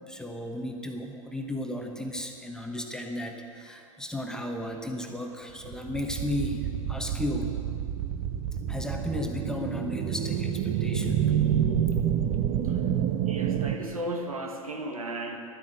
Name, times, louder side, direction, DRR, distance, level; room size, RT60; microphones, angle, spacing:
voice 1, 0.1-7.5 8.7-11.3, left 1 dB, 5° left, 3 dB, 1.1 m, -34 dB
sound 1, 5.6-13.7, right 9 dB, 35° right, 0.9 m, -28 dB
voice 2, 13.3-15.4, right 1 dB, 75° right, 4 dB, 1.5 m, -35 dB
12.0 x 9.1 x 8.0 m, 2.6 s
figure-of-eight pair, 95°, 18 cm